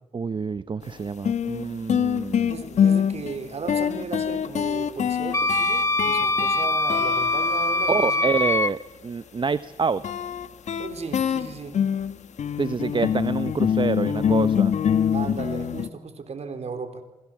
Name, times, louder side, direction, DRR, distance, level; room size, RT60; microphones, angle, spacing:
voice 1, 0.1-2.6 7.9-10.0 12.6-14.7, right 5 dB, 40° right, 14 dB, 0.8 m, -27 dB
sound 1, 0.8-0.9 1.2-8.5 10.0-15.9, left 8 dB, 65° left, 1.5 m, -25 dB
voice 2, 2.5-8.2 10.8-11.8 15.1-17.0, right 5 dB, 55° right, 8 dB, 4.0 m, -36 dB
Wind instrument woodwind instrument, 5.3-8.7, left 2 dB, 20° left, 1.3 m, -23 dB
27.0 x 25.0 x 7.6 m, 1.0 s
supercardioid pair, 50°, 13 cm